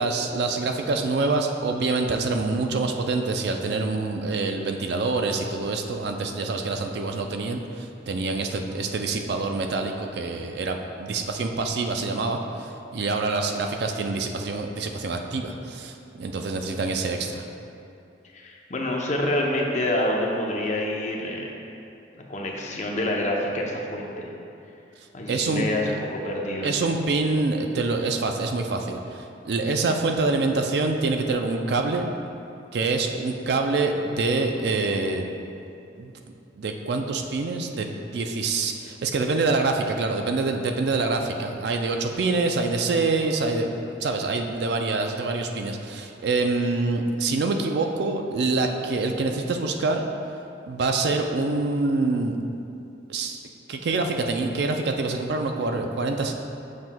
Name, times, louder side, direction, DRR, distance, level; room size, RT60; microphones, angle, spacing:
voice 1, 0.0-17.4 25.3-25.7 26.6-32.1 32.7-35.3 36.0-36.1 36.5-50.0 50.7-52.4 53.1-53.4 53.7-56.3, right 3 dB, 60° right, 4 dB, 0.4 m, -26 dB
voice 2, 18.3-21.5 22.3-24.3 25.1-26.0 26.2-26.7, left 1 dB, 40° left, -1 dB, 0.6 m, -27 dB
7.3 x 6.0 x 2.2 m, 2.7 s
head